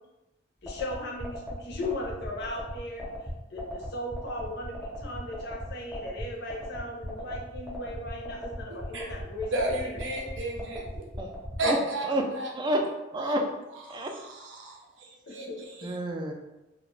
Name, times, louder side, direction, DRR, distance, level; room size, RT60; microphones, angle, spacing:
voice 1, 0.6-3.1 3.5-9.5 15.3-15.9, left 1 dB, 60° left, 0 dB, 0.5 m, -37 dB
sound 1, 0.7-11.6, equal, 10° right, 0.7 m, -37 dB
voice 2, 8.7-9.1 9.5-11.0 11.6-12.0 12.3-12.5 13.2-13.3 13.9-16.0, right 1 dB, 80° right, -1 dB, 0.6 m, -33 dB
voice 3, 12.0-13.5 13.9-14.2 15.8-16.3, right 1 dB, 25° right, 3 dB, 0.3 m, -29 dB
2.4 x 2.2 x 3.0 m, 0.99 s
head